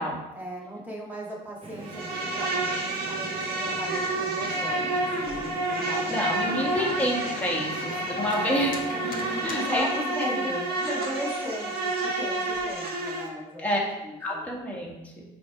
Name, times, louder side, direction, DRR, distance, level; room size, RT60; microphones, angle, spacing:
voice 1, 0.0-7.1 8.0-8.5 8.9-14.5, equal, 10° right, -4 dB, 1.9 m, -38 dB
sound 1, 1.6-9.5, right 1 dB, 35° right, 1.2 m, -42 dB
Insect, 1.8-13.3, right 2 dB, 65° right, 1.3 m, -29 dB
Organ, 3.9-9.8, left 4 dB, 55° left, 1.1 m, -41 dB
voice 2, 6.1-8.8 9.4-10.6 13.6-13.8 14.2-15.4, equal, 10° left, -4 dB, 1.7 m, -29 dB
6.1 x 3.7 x 4.7 m, 0.97 s
cardioid pair, 110°, 17 cm